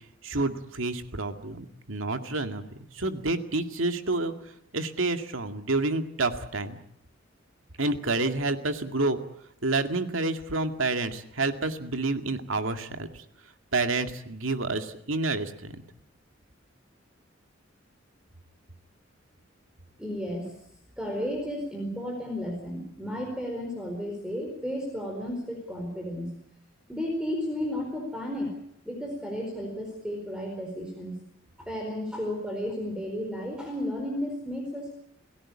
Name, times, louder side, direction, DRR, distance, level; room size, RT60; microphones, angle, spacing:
voice 1, 0.0-2.6 2.9-4.3 4.7-6.8 7.8-9.2 9.6-13.2 13.7-15.8, right 2 dB, 90° right, 7 dB, 2.2 m, -29 dB
voice 2, 20.0-20.5 21.0-26.3 26.9-28.5 28.8-31.2 31.6-34.9, equal, 5° right, 2 dB, 4.5 m, -33 dB
28.5 x 17.5 x 8.6 m, 0.70 s
head